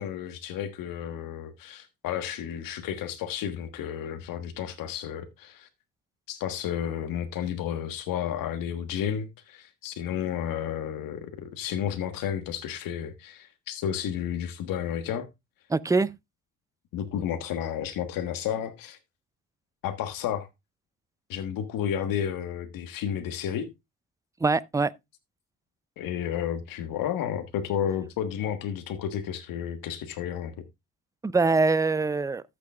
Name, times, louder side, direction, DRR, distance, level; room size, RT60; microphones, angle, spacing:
voice 1, 0.0-5.7 6.3-15.3 16.9-19.0 19.8-20.5 21.3-23.7 26.0-30.5, left 9 dB, 85° left, 1.4 m, -32 dB
voice 2, 15.7-16.1 24.4-24.9 31.2-32.4, right 3 dB, 10° right, 0.4 m, -23 dB
14.0 x 6.7 x 2.3 m
cardioid pair, 95°, 33 cm